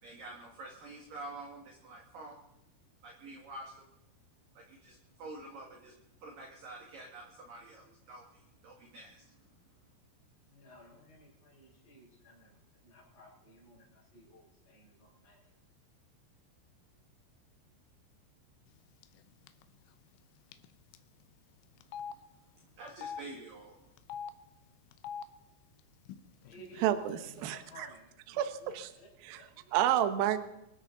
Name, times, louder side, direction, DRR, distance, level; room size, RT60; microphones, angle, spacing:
voice 1, 0.0-2.4 3.0-3.9 4.5-5.9 6.2-9.5 22.1-22.2 22.5-23.9, right 2 dB, 55° right, 0 dB, 2.9 m, -48 dB
voice 2, 10.5-15.4 26.4-29.8, equal, 45° left, -6 dB, 5.4 m, -56 dB
Telephone, 19.0-19.2 19.5-19.6 20.5-20.7 20.9-21.0 21.8-22.1 22.9-23.2 24.0-24.3 24.9-25.2 26.1-26.2 26.4-27.1, left 7 dB, 80° left, 3.1 m, -42 dB
voice 3, 26.8-27.9 28.3-28.9 29.2-29.5 29.7-30.4, right 11 dB, 85° right, 9 dB, 2.1 m, -30 dB
25.0 x 13.0 x 3.9 m, 0.87 s
omnidirectional pair, 5.9 m